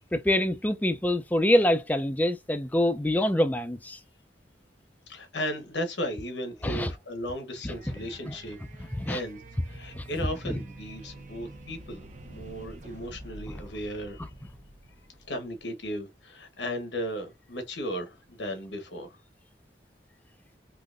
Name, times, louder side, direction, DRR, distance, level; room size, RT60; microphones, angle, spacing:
voice 1, 0.1-4.0 6.6-6.9 7.6-7.7 8.3-8.4 8.9-9.2 9.9-10.0 10.4-10.6 13.5-13.6, left 1 dB, 10° left, 0.4 m, -25 dB
voice 2, 5.1-9.4 9.7-14.3 15.3-19.2, equal, 90° left, 1.1 m, -36 dB
sound 1, 7.7-15.6, right 2 dB, 45° right, 0.7 m, -47 dB
3.7 x 2.8 x 2.5 m
head